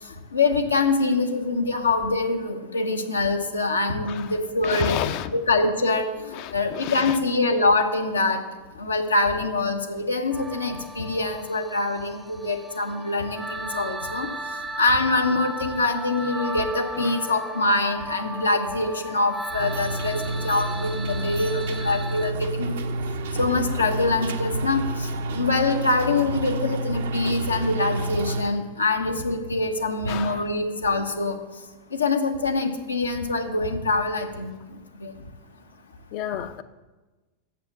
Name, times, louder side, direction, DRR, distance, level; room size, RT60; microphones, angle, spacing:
voice 1, 0.3-5.0 5.3-6.0 6.5-8.4 8.8-14.3 14.8-22.8 23.4-31.4 31.9-34.5 35.0-35.1, left 3 dB, 85° left, 1.1 m, -24 dB
voice 2, 4.0-4.4 4.6-5.3 6.3-7.2 16.9-17.3 30.1-30.4 36.1-36.6, left 10 dB, 50° left, 0.6 m, -31 dB
sound 1, 10.3-22.3, right 1 dB, 5° right, 0.5 m, -36 dB
sound 2, 19.6-28.4, right 2 dB, 65° right, 0.8 m, -29 dB
7.4 x 5.8 x 7.3 m
figure-of-eight pair, 90°, 0 cm